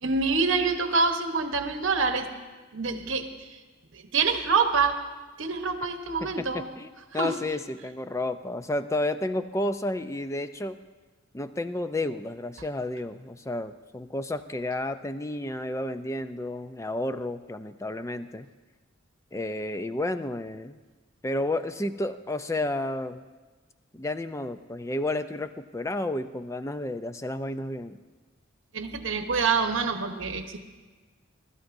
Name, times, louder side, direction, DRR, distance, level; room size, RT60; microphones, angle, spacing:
voice 1, 0.0-2.3 2.7-3.6 3.9-5.0 5.4-6.7 7.1-7.4 28.7-30.6, right 4 dB, 65° right, 5 dB, 1.1 m, -26 dB
voice 2, 6.2-6.9 7.1-10.8 11.3-18.5 19.3-20.8 21.2-23.2 23.9-28.0, left 1 dB, 15° left, 11 dB, 0.4 m, -31 dB
22.0 x 12.5 x 2.6 m, 1.3 s
head